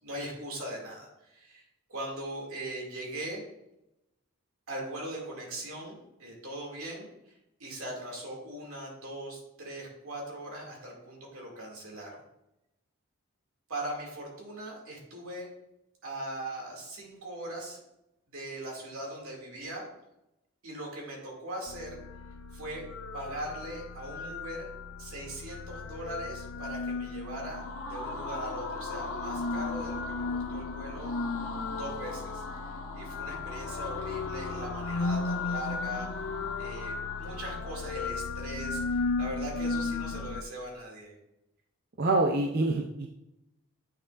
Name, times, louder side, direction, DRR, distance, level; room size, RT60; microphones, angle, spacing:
voice 1, 0.0-1.6 1.9-3.4 4.7-12.2 13.7-15.5 16.0-17.8 18.3-19.9 20.6-22.0 22.5-22.8 23.1-24.7 25.0-27.6 27.9-31.1 31.8-36.1 36.6-41.1, right 1 dB, 80° right, -1 dB, 2.4 m, -40 dB
sound 1, 21.7-40.4, left 4 dB, 60° left, 0.4 m, -35 dB
sound 2, 27.3-38.2, left 2 dB, 80° left, 1.2 m, -41 dB
voice 2, 42.0-43.1, right 2 dB, 45° right, 1 dB, 0.5 m, -26 dB
9.1 x 6.1 x 2.5 m, 0.88 s
head